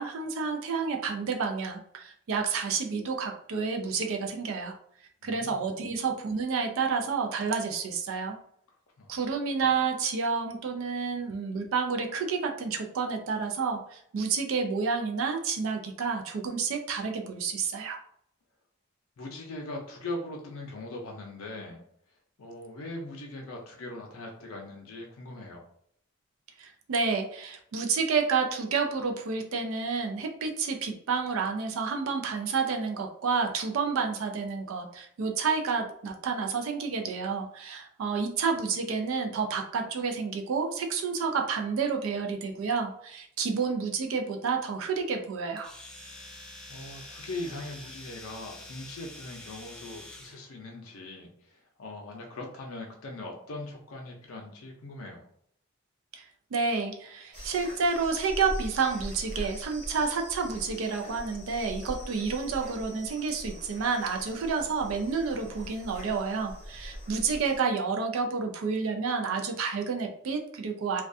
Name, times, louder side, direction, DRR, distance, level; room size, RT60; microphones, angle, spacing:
voice 1, 0.0-4.8 5.2-8.4 9.1-18.0 26.6-45.7 56.1-71.0, right 5 dB, 75° right, 3 dB, 0.4 m, -30 dB
voice 2, 5.2-5.6 9.0-9.2 19.2-21.8 22.4-25.6 46.2-46.3 46.7-55.2, left 2 dB, 80° left, 0 dB, 0.5 m, -40 dB
Domestic sounds home sounds, 45.6-50.4, left 1 dB, 5° left, 0.3 m, -46 dB
sound 1, 57.3-67.6, equal, 55° right, 1.1 m, -42 dB
2.3 x 2.2 x 2.5 m, 0.67 s
head